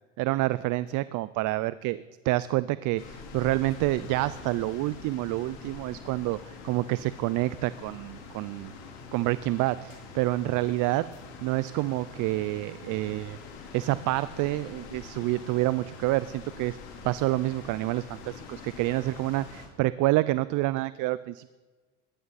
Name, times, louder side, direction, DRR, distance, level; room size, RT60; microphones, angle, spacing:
voice 1, 0.2-8.7 9.1-11.1 11.4-13.4 13.7-16.8 17.0-21.5, right 18 dB, 55° right, 17 dB, 0.6 m, -28 dB
sound 1, 3.0-19.7, left 5 dB, 65° left, 3.8 m, -45 dB
19.0 x 12.5 x 4.2 m, 1.3 s
supercardioid pair, 90°, 38 cm